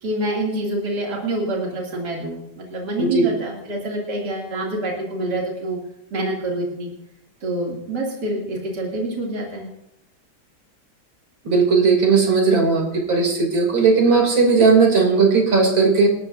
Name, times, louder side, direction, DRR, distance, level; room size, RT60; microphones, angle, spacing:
voice 1, 0.0-5.8 6.1-6.9 7.4-9.7, right 1 dB, 55° right, -3 dB, 3.3 m, -26 dB
voice 2, 11.5-12.8 13.1-16.1, right 4 dB, 70° right, 1 dB, 3.7 m, -16 dB
27.0 x 13.0 x 2.7 m, 0.81 s
omnidirectional pair, 2.2 m